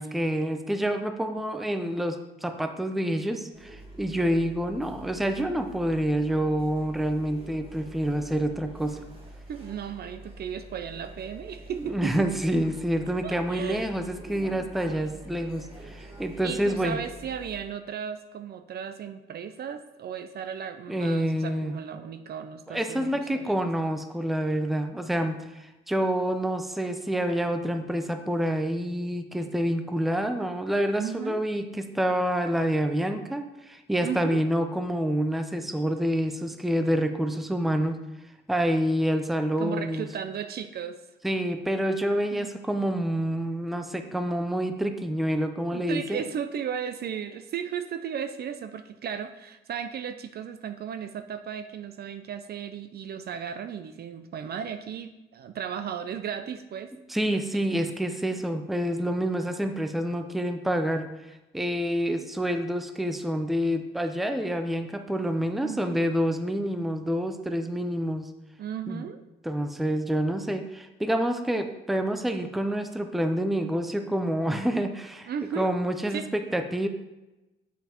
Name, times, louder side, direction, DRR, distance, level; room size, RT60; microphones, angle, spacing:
voice 1, 0.0-9.0 11.8-17.0 20.9-21.7 22.7-38.0 38.5-40.1 41.2-46.2 57.1-61.1 61.5-68.3 68.9-69.0 69.4-75.3 75.6-76.9, equal, ahead, 7 dB, 0.5 m, -27 dB
sound 1, 3.5-17.6, right 1 dB, 30° right, 1.8 m, -46 dB
voice 2, 9.5-12.3 13.2-13.9 14.3-15.1 16.4-23.6 31.0-31.4 34.0-34.4 39.6-41.0 42.3-42.5 45.7-56.9 57.5-58.0 65.6-66.1 68.6-69.2 75.3-75.7 76.1-76.3, right 8 dB, 55° right, 9 dB, 0.4 m, -35 dB
7.3 x 5.6 x 3.0 m, 1.0 s
cardioid pair, 90°, 20 cm